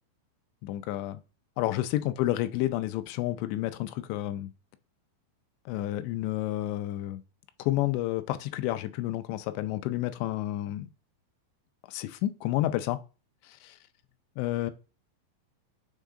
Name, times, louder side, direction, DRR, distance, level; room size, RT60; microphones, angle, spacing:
voice 1, 0.6-1.2 1.6-4.5 5.7-7.2 7.6-10.9 11.9-13.0 13.6-13.7 14.4-14.7, left 15 dB, 80° left, 2.6 m, -30 dB
9.3 x 4.1 x 3.7 m
omnidirectional pair, 5.6 m